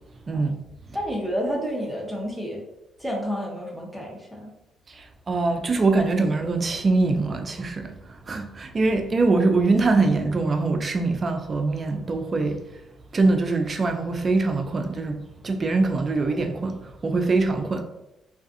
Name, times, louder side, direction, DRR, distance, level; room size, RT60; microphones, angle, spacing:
voice 1, 0.9-2.6 3.0-4.5, equal, 5° left, 0.8 m, -30 dB
voice 2, 5.0-7.9 8.3-12.6 13.1-17.8, right 3 dB, 35° right, 0.4 m, -23 dB
2.4 x 2.4 x 2.6 m
cardioid pair, 90°, 0 cm